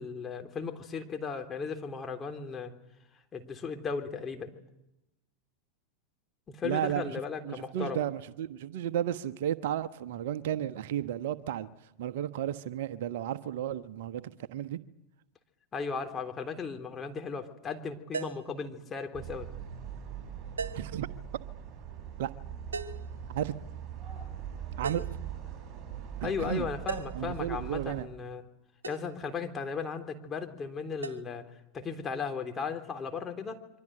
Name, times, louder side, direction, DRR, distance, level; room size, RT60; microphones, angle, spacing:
voice 1, 0.0-2.7 3.3-4.5 6.5-8.0 15.7-19.5 20.7-20.9 26.2-28.4 28.9-31.4 31.7-33.6, left 5 dB, 25° left, 3.5 m, -36 dB
voice 2, 6.6-7.1 7.4-11.7 12.0-14.8 20.7-21.1 22.2-22.3 23.3-23.5 24.8-25.1 26.2-26.7 27.1-28.1, right 11 dB, 60° right, 1.2 m, -33 dB
sound 1, 18.1-18.5 20.6-21.0 22.7-23.1 24.8-25.2 26.9-27.3 28.8-29.1 31.0-31.2, right 5 dB, 80° right, 1.6 m, -37 dB
sound 2, 19.1-28.0, right 9 dB, 30° right, 7.8 m, -41 dB
26.5 x 24.5 x 7.8 m
hypercardioid pair, 90°, 0 cm